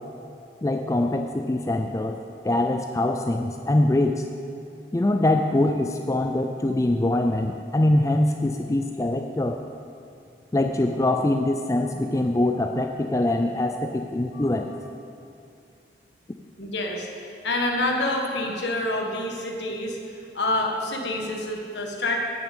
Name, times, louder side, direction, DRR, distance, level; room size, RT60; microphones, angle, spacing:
voice 1, 0.6-2.2 2.4-4.3 4.9-9.6 10.5-14.7, left 1 dB, 15° left, 5 dB, 0.4 m, -23 dB
voice 2, 14.3-14.7 16.6-22.2, left 1 dB, 80° left, 1 dB, 1.5 m, -28 dB
9.2 x 6.9 x 8.1 m, 2.5 s
head